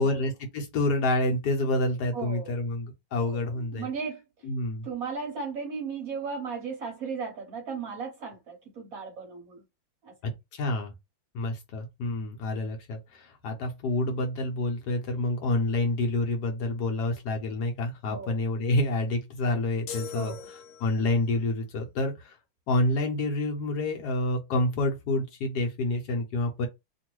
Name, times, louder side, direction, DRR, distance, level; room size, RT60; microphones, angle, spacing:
voice 1, 0.0-3.9 4.4-4.9 10.2-10.9 11.3-22.4 22.7-26.7, left 2 dB, 65° left, 1.2 m, -28 dB
voice 2, 2.1-2.5 3.2-4.2 4.8-9.6 10.0-10.1 18.1-18.4 20.1-20.5, right 5 dB, 60° right, 1.1 m, -36 dB
sound 1, 19.9-21.2, left 7 dB, 80° left, 1.5 m, -41 dB
2.9 x 2.6 x 3.0 m
omnidirectional pair, 2.1 m